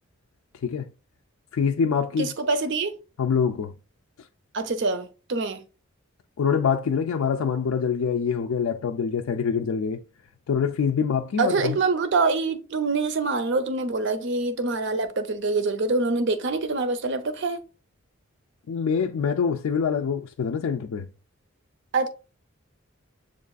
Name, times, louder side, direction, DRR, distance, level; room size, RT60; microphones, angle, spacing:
voice 1, 1.5-2.3 3.2-3.7 6.4-10.0 10.5-11.8 18.7-21.1, left 6 dB, 85° left, 0.4 m, -25 dB
voice 2, 2.2-3.0 4.5-5.6 11.4-17.6 21.9-22.1, right 3 dB, 60° right, 0.6 m, -25 dB
7.2 x 2.4 x 2.3 m
head